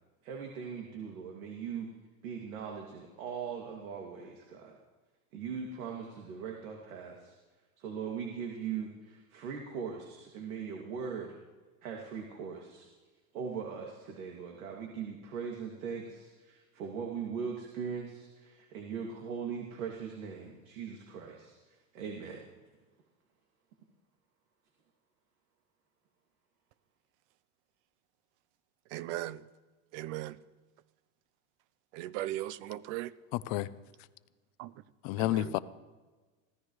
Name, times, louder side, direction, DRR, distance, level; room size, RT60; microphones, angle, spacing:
voice 1, 0.2-1.9 2.2-4.7 5.3-7.3 7.8-11.4 11.8-12.9 13.3-22.4, right 6 dB, 85° right, 2.6 m, -40 dB
voice 2, 28.9-29.4 29.9-30.3 32.0-33.1 34.6-34.7, right 15 dB, 55° right, 0.7 m, -37 dB
voice 3, 33.3-33.7 35.0-35.6, left 15 dB, 45° left, 0.7 m, -30 dB
24.5 x 16.0 x 3.2 m
supercardioid pair, 150°, 42 cm